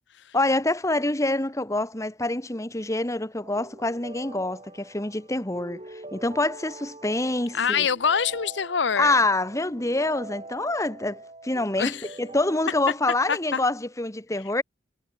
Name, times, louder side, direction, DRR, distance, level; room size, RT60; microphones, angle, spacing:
voice 1, 0.3-7.9 9.0-14.6, left 2 dB, 15° left, 1.3 m, -26 dB
sound 1, 3.4-13.0, right 2 dB, 30° right, 4.0 m, -44 dB
voice 2, 7.5-9.2 11.8-12.1 13.3-13.6, left 6 dB, 65° left, 0.7 m, -25 dB
head